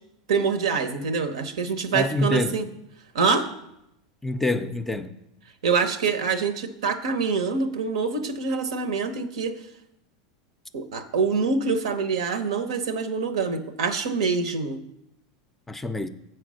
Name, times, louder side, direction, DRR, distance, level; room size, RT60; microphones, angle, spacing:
voice 1, 0.3-2.7 3.1-3.5 5.6-9.5 10.7-14.8, right 5 dB, 90° right, 0.9 m, -25 dB
voice 2, 1.9-2.6 4.2-5.1 15.7-16.1, left 2 dB, 5° left, 0.4 m, -26 dB
7.8 x 4.5 x 6.3 m
supercardioid pair, 140°, 3 cm